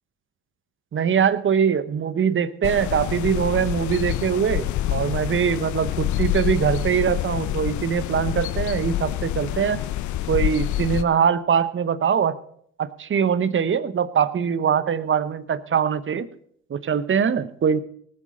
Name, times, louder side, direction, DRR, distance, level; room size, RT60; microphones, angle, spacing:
voice 1, 0.9-9.8 10.3-12.4 12.8-16.3 16.7-17.8, right 7 dB, 35° right, 15 dB, 0.9 m, -22 dB
sound 1, 2.6-11.0, left 13 dB, 55° left, 0.7 m, -27 dB
19.0 x 7.8 x 5.3 m, 0.66 s
hypercardioid pair, 65°, 36 cm